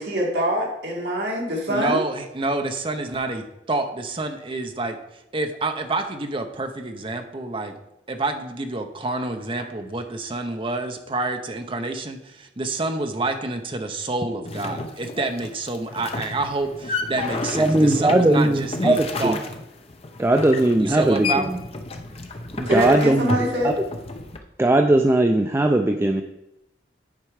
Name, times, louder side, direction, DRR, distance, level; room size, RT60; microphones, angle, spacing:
voice 1, 0.0-2.0 9.6-9.7 22.7-23.7, equal, 65° right, -2 dB, 2.1 m, -24 dB
voice 2, 1.7-5.0 5.3-7.8 8.1-19.4 20.7-21.5, right 2 dB, 30° right, 5 dB, 0.8 m, -28 dB
sound 1, 14.5-24.4, left 3 dB, 35° left, 0.7 m, -31 dB
voice 3, 17.5-19.4 20.2-21.6 22.5-23.7 24.6-26.2, right 1 dB, 15° right, 4 dB, 0.4 m, -19 dB
9.5 x 4.5 x 4.9 m, 0.90 s
head